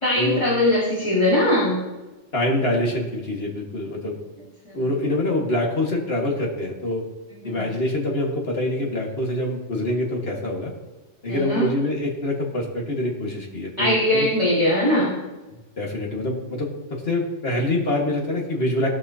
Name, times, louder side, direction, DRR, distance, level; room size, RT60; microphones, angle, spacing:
voice 1, 0.0-1.8 4.7-4.8 7.4-7.7 11.3-11.7 13.8-15.1, left 1 dB, 25° left, -8 dB, 2.3 m, -21 dB
voice 2, 2.3-4.2 4.7-7.0 7.4-10.7 11.2-14.3 15.8-18.9, left 1 dB, 55° left, -1 dB, 1.9 m, -25 dB
16.5 x 5.8 x 2.8 m, 1.1 s
omnidirectional pair, 1.2 m